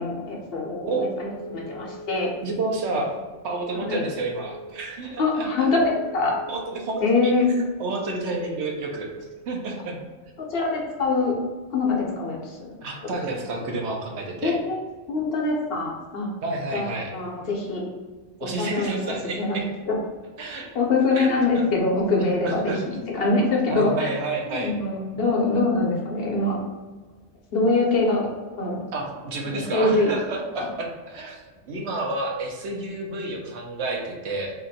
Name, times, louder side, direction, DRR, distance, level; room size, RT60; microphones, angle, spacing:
voice 1, 0.0-2.3 3.7-4.0 5.2-6.3 7.0-7.5 10.5-11.3 11.7-12.7 13.1-13.2 14.4-14.8 15.1-16.3 16.7-17.9 18.4-20.0 20.7-24.1 24.5-26.6 27.5-28.3 28.6-28.8 29.4-30.1 30.5-30.7, left 3 dB, 60° left, -1 dB, 0.8 m, -24 dB
Telephone, 1.3-2.4 3.6-4.7 5.9-7.0 8.1-9.2, right 1 dB, 55° right, 0.3 m, -40 dB
voice 2, 2.4-3.2 3.4-5.7 6.5-7.3 7.8-10.0 12.8-14.6 16.4-17.2 18.4-19.7 20.4-20.7 21.1-21.3 22.4-22.8 23.7-24.7 28.9-31.4 31.7-34.5, right 3 dB, 75° right, 1 dB, 0.9 m, -30 dB
2.8 x 2.5 x 3.9 m, 1.3 s
omnidirectional pair, 1.2 m